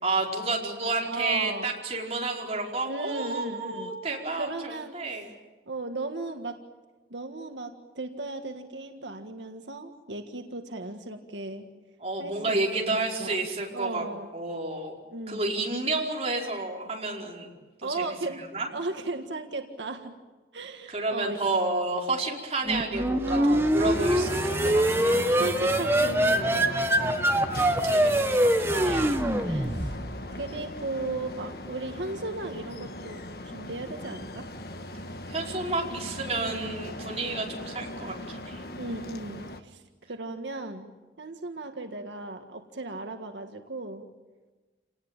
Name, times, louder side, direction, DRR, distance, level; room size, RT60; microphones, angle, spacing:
voice 1, 0.0-5.3 12.0-14.0 14.3-15.0 15.3-17.5 17.8-18.7 20.9-25.1 27.8-28.2 28.7-29.7 35.3-38.6, right 3 dB, 35° right, -1 dB, 4.9 m, -30 dB
voice 2, 1.0-1.7 2.8-3.9 4.4-5.0 5.7-6.6 7.1-11.7 12.2-12.6 12.9-13.3 13.7-14.3 15.1-15.5 17.8-18.4 18.7-20.1 20.5-21.4 23.2-23.7 24.6-27.2 28.6-30.0 30.3-34.5 36.3-36.7 38.8-40.9 41.2-44.1, right 2 dB, 85° right, 5 dB, 1.8 m, -36 dB
sound 1, 22.6-30.3, right 1 dB, 15° right, 1.4 m, -24 dB
sound 2, 23.8-39.6, left 1 dB, 55° left, 1.7 m, -38 dB
28.5 x 19.0 x 9.0 m, 1.3 s
head